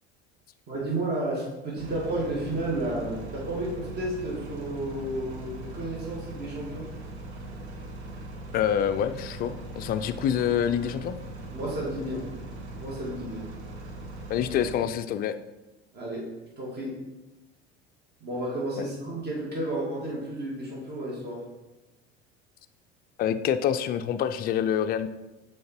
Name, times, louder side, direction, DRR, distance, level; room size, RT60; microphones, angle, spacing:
voice 1, 0.7-6.9 11.5-12.3 12.7-13.4 15.9-16.3 16.6-17.0 18.2-21.4, right 1 dB, 30° right, -4 dB, 2.3 m, -32 dB
sound 1, 1.8-14.8, right 1 dB, 75° right, 1.2 m, -40 dB
voice 2, 8.5-11.2 14.3-15.3 18.8-18.9 23.2-25.1, left 9 dB, 30° left, 9 dB, 0.4 m, -26 dB
6.4 x 4.4 x 4.4 m, 1.0 s
figure-of-eight pair, 70°, 33 cm